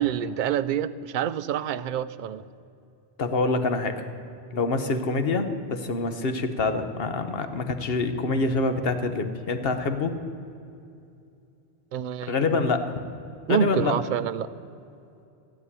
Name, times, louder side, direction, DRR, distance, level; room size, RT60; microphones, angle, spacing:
voice 1, 0.0-2.4 11.9-12.7 13.5-14.5, right 9 dB, 60° right, 14 dB, 0.6 m, -27 dB
voice 2, 3.2-4.0 4.5-10.2 12.3-12.9 13.5-13.9, left 3 dB, 60° left, 8 dB, 1.2 m, -26 dB
15.5 x 7.7 x 9.8 m, 2.6 s
omnidirectional pair, 1.2 m